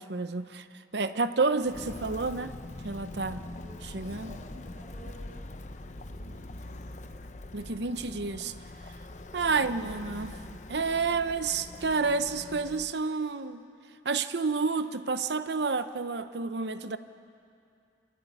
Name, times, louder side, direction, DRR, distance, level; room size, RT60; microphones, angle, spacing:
voice 1, 0.0-2.5 2.8-3.4 3.8-4.3 7.5-8.5 9.3-10.4 10.7-13.6 14.0-17.0, right 4 dB, 75° right, 11 dB, 0.8 m, -30 dB
Walk footsteps, 1.6-12.9, left 2 dB, 40° left, 0.7 m, -43 dB
voice 2, 3.4-5.4 5.9-6.8 9.4-9.6, right 1 dB, 40° right, -8 dB, 3.0 m, -53 dB
27.0 x 13.5 x 9.5 m, 2.5 s
head